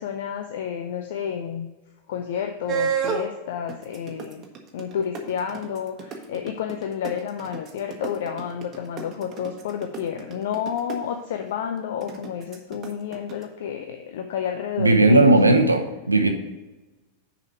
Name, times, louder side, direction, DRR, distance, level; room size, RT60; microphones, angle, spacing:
voice 1, 0.0-1.7 2.1-4.4 4.7-15.2, left 8 dB, 55° left, 6 dB, 0.5 m, -30 dB
sound 1, 2.7-3.3 3.7-10.9 12.0-13.4, right 7 dB, 30° right, 1.2 m, -30 dB
voice 2, 14.8-16.3, right 2 dB, 80° right, 6 dB, 0.8 m, -16 dB
6.6 x 4.9 x 5.8 m, 1.1 s
figure-of-eight pair, 90°, 0 cm